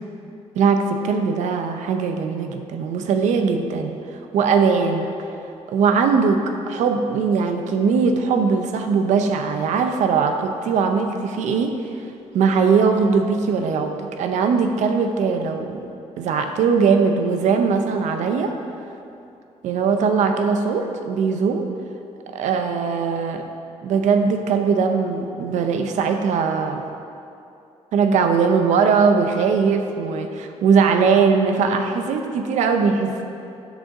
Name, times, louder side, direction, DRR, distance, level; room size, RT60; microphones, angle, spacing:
voice 1, 0.6-4.0 4.3-5.0 5.7-11.8 12.3-15.9 16.2-18.5 19.6-21.7 22.3-23.4 23.8-26.8 27.9-33.2, right 5 dB, 80° right, 5 dB, 0.6 m, -20 dB
8.2 x 3.6 x 6.4 m, 2.7 s
cardioid pair, 100°, 12 cm